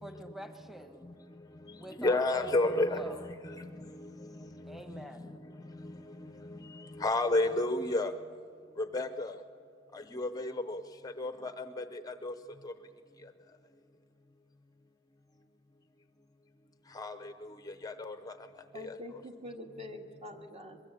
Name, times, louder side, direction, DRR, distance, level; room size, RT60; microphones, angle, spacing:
voice 1, 0.0-1.1 1.7-3.3 4.7-5.4, equal, ahead, 6 dB, 1.2 m, -45 dB
voice 2, 2.0-4.1 4.6-5.0 5.8-8.1 8.8-9.3 9.9-12.3 12.6-12.7 16.9-17.3 17.8-18.3 18.8-18.9, left 2 dB, 20° left, 10 dB, 0.7 m, -32 dB
voice 3, 18.7-20.8, left 1 dB, 30° right, 4 dB, 1.9 m, -45 dB
23.0 x 22.5 x 8.5 m, 2.3 s
head